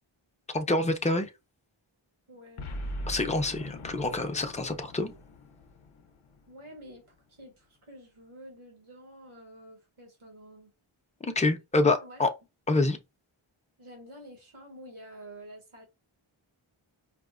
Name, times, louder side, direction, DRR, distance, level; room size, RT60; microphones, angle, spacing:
voice 1, 0.5-1.3 3.1-5.1 11.2-12.3 12.7-13.0, left 2 dB, 15° left, 0.5 m, -26 dB
voice 2, 2.3-2.7 6.5-10.7 12.0-12.2 13.8-15.8, equal, 80° right, 1.3 m, -49 dB
Boom, 2.6-7.0, equal, 80° left, 0.6 m, -41 dB
4.9 x 2.0 x 2.4 m
wide cardioid pair, 45°, 49 cm